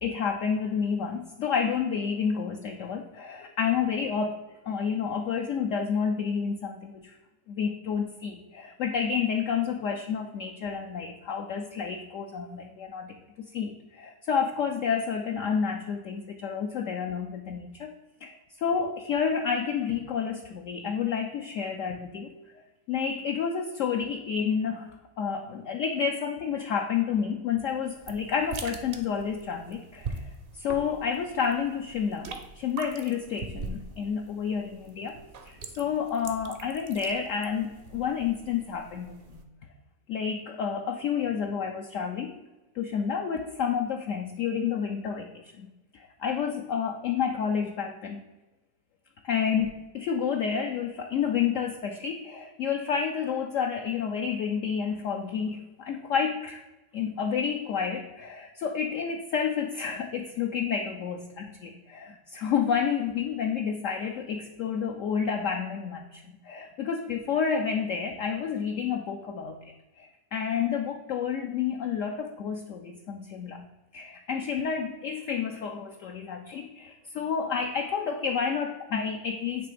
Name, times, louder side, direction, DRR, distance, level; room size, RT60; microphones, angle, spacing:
voice 1, 0.0-6.9 7.5-13.2 13.5-17.9 18.2-22.3 22.9-35.2 35.4-39.4 40.1-42.4 42.7-45.7 45.9-48.2 49.2-56.6 56.9-69.6 70.0-73.7 73.9-79.7, left 7 dB, 75° left, 3 dB, 0.7 m, -30 dB
sound 1, 27.8-39.4, right 4 dB, 60° right, 0.6 m, -43 dB
8.5 x 3.3 x 5.0 m, 1.1 s
omnidirectional pair, 1.9 m